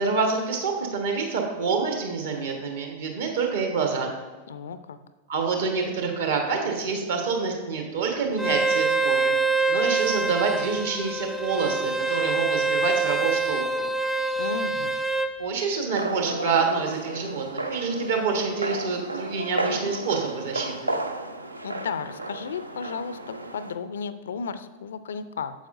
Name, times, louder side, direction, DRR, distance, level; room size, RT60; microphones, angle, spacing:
voice 1, 0.0-4.1 5.3-9.4 9.7-13.9 15.4-20.9, right 5 dB, 60° right, 3 dB, 1.3 m, -27 dB
voice 2, 4.5-5.0 14.4-14.9 21.6-25.5, left 6 dB, 65° left, 13 dB, 0.4 m, -34 dB
Bowed string instrument, 8.4-15.3, right 3 dB, 5° right, 0.5 m, -25 dB
sound 1, 15.9-23.8, right 1 dB, 85° right, 0.4 m, -33 dB
9.0 x 7.5 x 2.6 m, 1.3 s
figure-of-eight pair, 90°, 0 cm